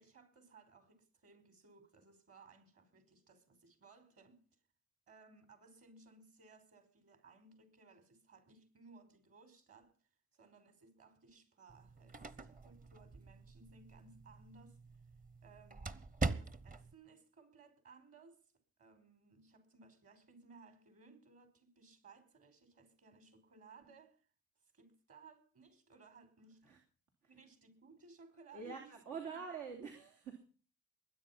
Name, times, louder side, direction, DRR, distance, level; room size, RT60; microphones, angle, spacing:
voice 1, 0.0-4.4 5.1-9.9 10.3-14.8 15.4-16.0 16.4-18.4 18.8-24.2 24.7-26.6 27.3-29.0 29.3-29.4, right 4 dB, 50° right, 5.1 m, -61 dB
sound 1, 11.7-16.9, right 3 dB, 25° right, 1.1 m, -43 dB
voice 2, 28.5-30.4, right 5 dB, 85° right, 3.6 m, -45 dB
21.0 x 9.6 x 5.8 m
cardioid pair, 90°, 30 cm